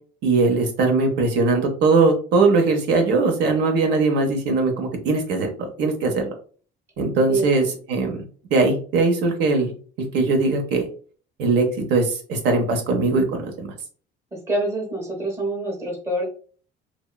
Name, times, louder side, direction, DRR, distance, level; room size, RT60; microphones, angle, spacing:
voice 1, 0.2-6.2 7.0-8.2 8.5-9.7 10.0-10.9 11.4-13.7, right 3 dB, 80° right, 4 dB, 0.6 m, -20 dB
voice 2, 14.5-16.2, right 2 dB, 15° right, 0 dB, 0.6 m, -25 dB
2.9 x 2.1 x 2.2 m, 0.42 s
cardioid pair, 165°, 18 cm